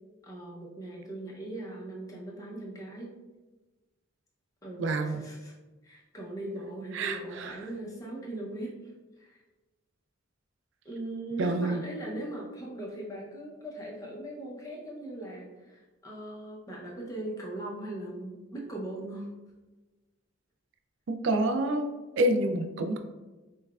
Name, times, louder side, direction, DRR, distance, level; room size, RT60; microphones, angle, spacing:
voice 1, 0.2-3.1 4.6-5.5 5.8-8.9 9.2-9.4 10.8-19.3, right 1 dB, 15° left, -3 dB, 0.6 m, -39 dB
voice 2, 4.8-5.2 6.9-7.5 11.4-11.8 21.1-21.9 22.2-23.0, right 2 dB, 65° right, 6 dB, 0.4 m, -27 dB
5.3 x 2.2 x 2.3 m, 1.2 s
head